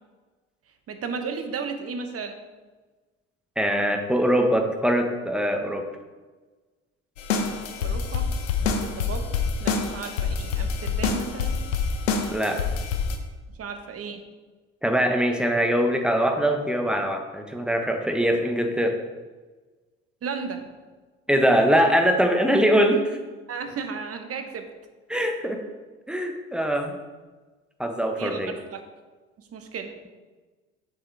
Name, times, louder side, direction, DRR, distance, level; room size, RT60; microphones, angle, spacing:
voice 1, 0.9-2.4 7.8-8.3 8.6-9.3 9.6-11.6 13.6-14.2 20.2-20.7 23.5-24.7 28.2-28.8 29.4-29.9, right 5 dB, 40° right, 6 dB, 1.1 m, -34 dB
voice 2, 3.6-5.8 12.3-12.6 14.8-19.0 21.3-23.2 25.1-25.6 26.1-27.0 27.8-28.5, equal, ahead, 4 dB, 1.2 m, -22 dB
sound 1, 7.2-13.2, left 5 dB, 85° left, 0.8 m, -26 dB
7.2 x 7.0 x 3.4 m, 1.3 s
hypercardioid pair, 60°, 37 cm